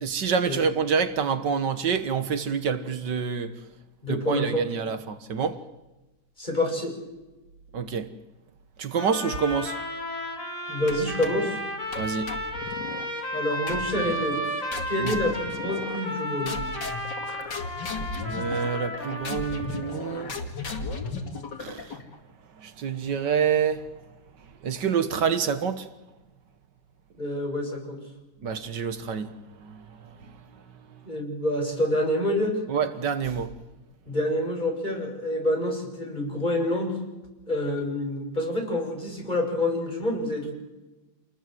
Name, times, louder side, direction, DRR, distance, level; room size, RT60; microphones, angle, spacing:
voice 1, 0.0-3.5 4.1-5.6 7.7-8.1 8.8-9.8 12.0-12.3 15.0-15.2 18.1-20.4 21.6-22.0 22.6-23.9 24.6-25.9 28.4-30.1 30.9-31.0 32.7-33.5, right 6 dB, 80° right, 2.0 m, -27 dB
voice 2, 4.0-4.6 6.4-7.0 10.7-11.6 13.3-14.6 14.9-16.6 27.2-28.0 31.0-32.6 34.1-37.0 37.5-40.5, left 1 dB, 25° left, 6.9 m, -27 dB
sound 1, 9.0-20.0, equal, 50° left, 4.4 m, -33 dB
sound 2, 10.9-11.5 11.9-13.1 13.7-14.2 14.7-16.2 16.5-22.2, left 4 dB, 80° left, 3.1 m, -36 dB
28.0 x 20.0 x 7.8 m
omnidirectional pair, 1.8 m